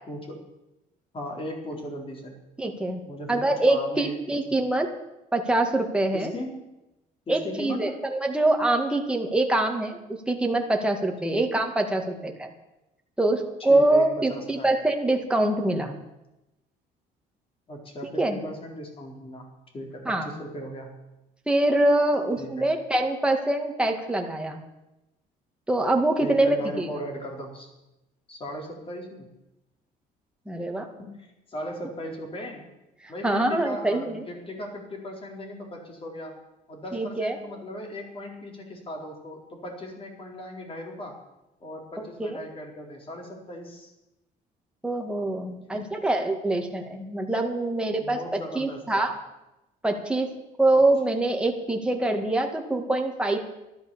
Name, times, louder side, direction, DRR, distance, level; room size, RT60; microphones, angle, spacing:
voice 1, 0.1-0.4 1.1-2.4 3.0-4.4 6.1-6.7 7.3-8.0 11.2-11.4 13.6-14.7 17.7-19.5 19.7-20.9 22.4-22.7 26.2-27.7 28.3-29.3 31.0-32.7 33.1-36.4 36.7-41.2 41.6-43.9 45.7-46.1 48.0-49.1, equal, 35° left, 1 dB, 4.1 m, -37 dB
voice 2, 2.6-3.0 3.3-4.9 5.3-6.3 7.3-12.5 13.2-16.0 18.2-18.4 20.1-20.3 21.5-24.6 25.7-26.9 30.5-30.9 33.0-34.3 36.9-37.4 42.0-42.4 44.8-48.2 48.5-49.1 49.8-50.3 50.6-53.4, right 2 dB, 5° right, 2 dB, 2.1 m, -24 dB
12.5 x 12.0 x 7.1 m, 0.95 s
cardioid pair, 110°, 17 cm